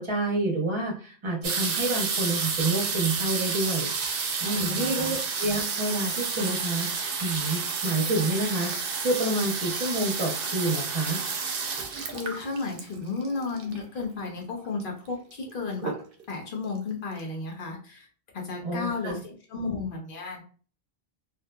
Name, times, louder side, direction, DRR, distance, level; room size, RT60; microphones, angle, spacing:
voice 1, 0.0-3.9 4.4-11.2 18.6-19.2, right 2 dB, 30° right, -2 dB, 0.7 m, -28 dB
sound 1, 1.4-14.0 14.8-14.9 15.1-15.5 15.8-16.4 16.9-17.0 17.2-17.3, right 5 dB, 65° right, 0.7 m, -30 dB
voice 2, 4.5-5.2 12.0-15.9 16.3-18.1 18.3-20.4, left 3 dB, 55° left, 0 dB, 0.9 m, -33 dB
2.7 x 2.5 x 2.2 m, 0.41 s
omnidirectional pair, 1.1 m